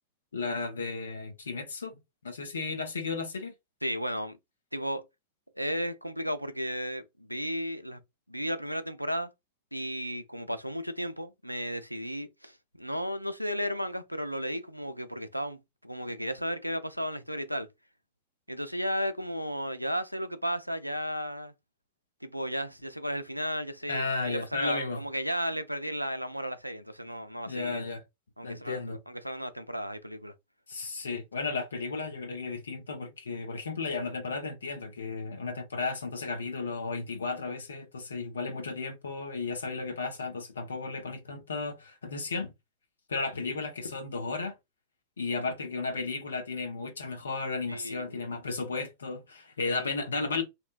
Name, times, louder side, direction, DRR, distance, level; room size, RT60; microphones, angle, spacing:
voice 1, 0.3-3.5 23.9-25.0 27.5-28.0 28.4-29.0 30.7-42.5 43.1-44.5 45.2-50.4, left 4 dB, 70° left, 0.7 m, -34 dB
voice 2, 3.8-4.4 4.7-5.0 5.6-8.0 8.3-9.3 9.7-17.7 18.5-21.5 22.2-27.8 28.4-30.3 47.7-48.3 49.6-49.9, equal, 90° right, 0.3 m, -34 dB
2.9 x 2.2 x 2.4 m
figure-of-eight pair, 90°, 0 cm